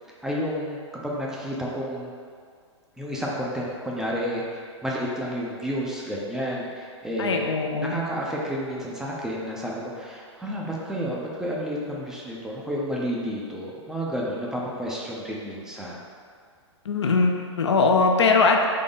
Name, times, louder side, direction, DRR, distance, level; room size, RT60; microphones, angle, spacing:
voice 1, 0.2-2.1 3.0-7.5 7.8-16.0, equal, 5° right, -5 dB, 0.4 m, -31 dB
voice 2, 7.2-7.9 16.9-18.7, left 4 dB, 65° left, 2 dB, 0.5 m, -21 dB
3.9 x 2.9 x 3.8 m, 2.1 s
figure-of-eight pair, 110°, 15 cm